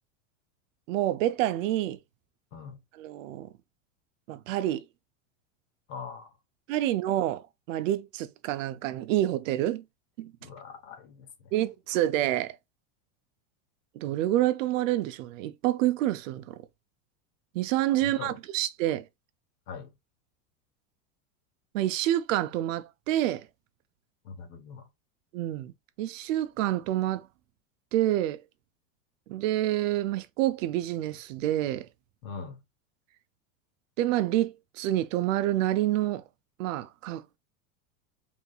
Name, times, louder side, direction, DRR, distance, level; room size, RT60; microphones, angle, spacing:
voice 1, 0.9-2.0 2.9-3.5 4.3-4.8 6.7-9.8 10.2-10.3 11.5-12.6 14.0-16.6 17.5-19.0 21.7-23.5 25.3-25.7 26.0-27.3 27.9-28.4 29.3-31.9 34.0-36.2 36.6-37.2, right 14 dB, 70° right, 0.6 m, -28 dB
voice 2, 5.9-6.3 10.4-11.5 18.0-18.4 19.7-19.9 24.2-24.9 32.2-32.6, left 5 dB, 60° left, 1.1 m, -42 dB
3.5 x 3.0 x 2.3 m
supercardioid pair, 145°, 40 cm